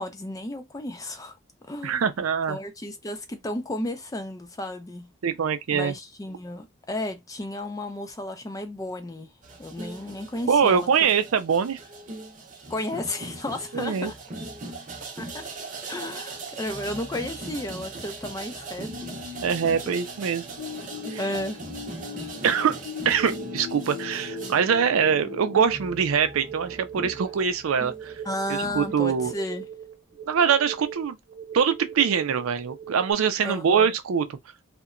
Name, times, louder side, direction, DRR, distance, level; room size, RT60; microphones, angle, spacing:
voice 1, 0.0-1.4 1.6-2.0 2.5-5.1 5.7-9.3 9.6-10.9 12.7-14.1 15.2-15.5 15.9-19.4 19.9-20.0 21.2-21.6 28.2-29.7 33.4-33.9, left 1 dB, 15° left, 0.4 m, -33 dB
voice 2, 1.8-2.6 5.2-5.9 10.5-11.8 13.7-14.1 19.4-20.5 21.1-21.2 22.4-22.8 23.0-28.1 28.5-29.3 30.3-31.2 31.5-34.4, right 7 dB, 85° right, 0.4 m, -23 dB
sound 1, 9.4-29.3, right 2 dB, 40° right, 0.7 m, -40 dB
sound 2, 20.6-25.6, left 7 dB, 55° left, 0.7 m, -39 dB
sound 3, 23.1-33.1, right 8 dB, 70° right, 1.0 m, -40 dB
2.8 x 2.2 x 2.4 m
head